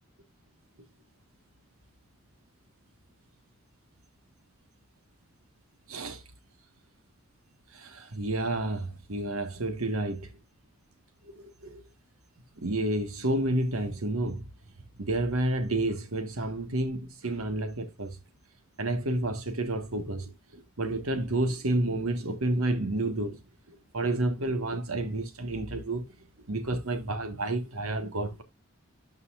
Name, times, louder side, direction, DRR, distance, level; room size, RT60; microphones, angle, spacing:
voice 1, 5.9-6.2 7.7-10.3 11.3-11.4 11.7-11.8 12.6-14.5 15.0-18.2 18.8-23.4 23.9-26.1 26.5-28.4, right 1 dB, 85° right, 1.5 m, -30 dB
12.0 x 5.4 x 2.4 m
head